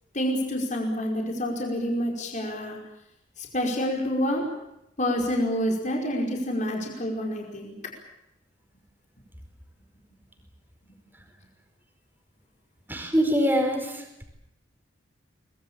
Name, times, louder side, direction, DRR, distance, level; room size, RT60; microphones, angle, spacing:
voice 1, 0.1-2.8 3.4-4.4 5.0-7.7, equal, 40° left, 0 dB, 5.1 m, -27 dB
voice 2, 12.9-14.0, equal, 10° right, 4 dB, 4.8 m, -23 dB
24.0 x 21.0 x 8.8 m, 0.84 s
head